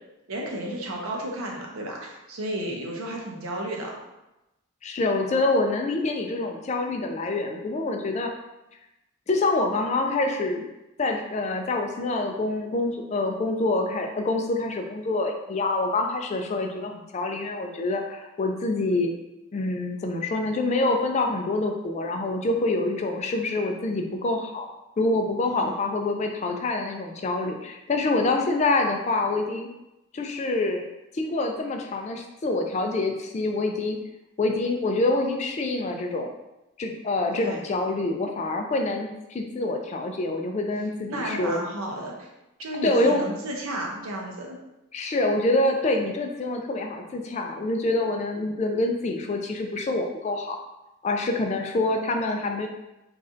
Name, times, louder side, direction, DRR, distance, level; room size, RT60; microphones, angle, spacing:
voice 1, 0.3-4.0 25.6-25.8 37.3-37.6 41.1-42.3 42.6-44.6, right 1 dB, 80° right, -1 dB, 0.8 m, -33 dB
voice 2, 4.8-8.3 9.3-10.6 11.0-19.1 19.5-24.7 25.0-29.7 30.1-30.8 31.1-34.0 34.4-36.3 36.8-41.6 42.8-43.2 44.9-50.6 51.0-52.7, left 2 dB, 35° left, 3 dB, 0.3 m, -26 dB
3.2 x 2.6 x 3.7 m, 0.95 s
head